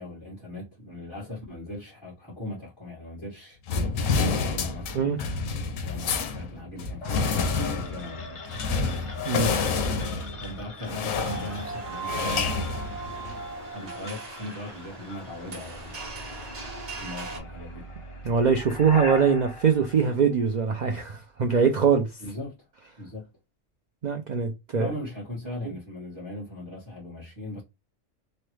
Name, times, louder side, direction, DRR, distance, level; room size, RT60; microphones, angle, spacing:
voice 1, 0.0-3.6 4.0-5.2 5.8-8.4 10.4-12.7 13.7-16.1 17.0-17.9 22.2-22.5 23.0-23.3 24.7-27.6, left 1 dB, 20° left, 1.4 m, -39 dB
sound 1, 3.7-13.5, left 4 dB, 85° left, 1.0 m, -29 dB
sound 2, 7.0-20.9, left 1 dB, 50° left, 0.3 m, -41 dB
sound 3, 11.2-17.4, right 4 dB, 35° right, 0.7 m, -38 dB
voice 2, 18.2-22.1 24.0-24.9, right 6 dB, 85° right, 0.4 m, -23 dB
3.2 x 2.2 x 3.1 m
omnidirectional pair, 1.3 m